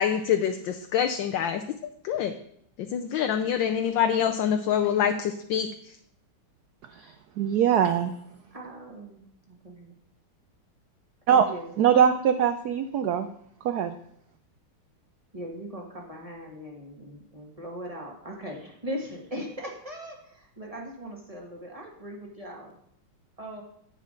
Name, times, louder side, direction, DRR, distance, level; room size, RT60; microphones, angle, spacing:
voice 1, 0.0-1.8 2.0-2.3 2.9-6.0, left 8 dB, 70° left, 6 dB, 1.2 m, -26 dB
voice 2, 7.0-8.1 11.3-13.3 13.6-13.9, right 8 dB, 90° right, 9 dB, 0.8 m, -23 dB
voice 3, 8.5-10.0 11.3-11.7 15.3-22.7 23.4-23.6, equal, 20° right, -1 dB, 1.3 m, -39 dB
10.5 x 9.0 x 3.8 m, 0.70 s
omnidirectional pair, 2.3 m